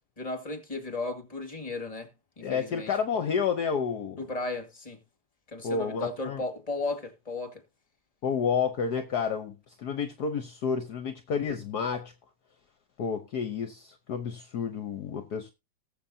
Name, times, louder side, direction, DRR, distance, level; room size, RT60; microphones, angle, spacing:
voice 1, 0.2-2.1 2.4-2.9 4.2-5.0 5.5-7.6, left 3 dB, 20° left, 2.2 m, -35 dB
voice 2, 2.4-4.2 5.6-6.4 8.2-12.1 13.0-15.5, left 6 dB, 60° left, 1.4 m, -30 dB
19.5 x 7.0 x 2.7 m
omnidirectional pair, 2.0 m